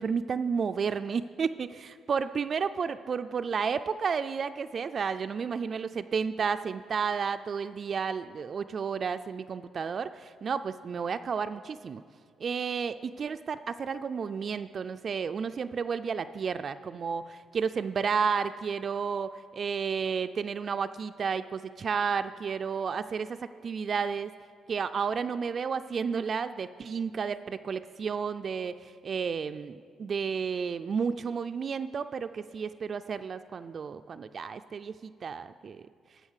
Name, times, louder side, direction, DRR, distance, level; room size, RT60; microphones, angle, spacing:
voice 1, 0.0-12.0 12.4-24.3 24.7-35.8, right 6 dB, 50° right, 10 dB, 0.3 m, -32 dB
13.5 x 5.1 x 6.5 m, 2.1 s
cardioid pair, 90°, 0 cm